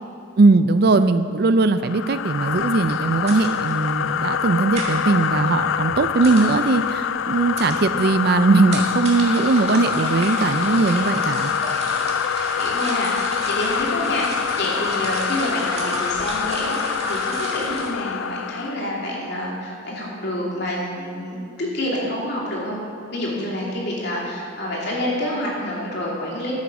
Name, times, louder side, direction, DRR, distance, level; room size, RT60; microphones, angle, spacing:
voice 1, 0.4-11.5, right 3 dB, 55° right, 12 dB, 0.4 m, -19 dB
sound 1, 1.8-18.8, left 8 dB, 75° left, 0.3 m, -25 dB
sound 2, 2.5-17.9, right 2 dB, 30° right, 1.7 m, -34 dB
voice 2, 12.5-22.8 23.1-26.5, left 1 dB, 60° left, -3 dB, 2.7 m, -28 dB
10.5 x 9.0 x 6.2 m, 2.5 s
head